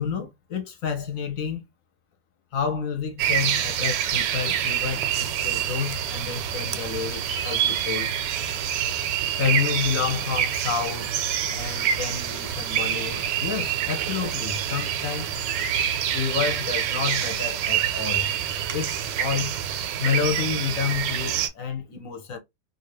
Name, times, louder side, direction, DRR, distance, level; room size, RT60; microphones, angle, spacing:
voice 1, 0.0-1.6 2.5-8.1 9.4-11.1 11.4-15.4 16.1-18.3 18.7-19.6 20.0-22.4, left 6 dB, 60° left, 1.1 m, -29 dB
sound 1, 3.2-21.5, right 9 dB, 90° right, 1.2 m, -26 dB
2.8 x 2.7 x 3.0 m
omnidirectional pair, 1.8 m